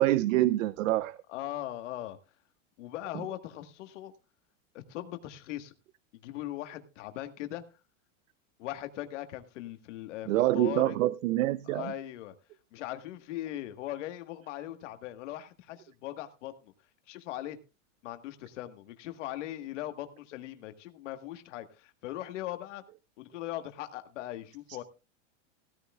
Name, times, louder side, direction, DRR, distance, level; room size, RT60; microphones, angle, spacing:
voice 1, 0.0-1.2 10.3-11.9, right 15 dB, 85° right, 0.7 m, -26 dB
voice 2, 1.3-2.2 2.8-4.1 4.7-5.7 6.2-7.6 8.6-11.0 11.7-12.3 12.7-16.5 17.1-17.6 18.0-22.8 23.2-24.8, left 14 dB, 65° left, 1.6 m, -39 dB
16.5 x 14.0 x 2.4 m
supercardioid pair, 170°, 38 cm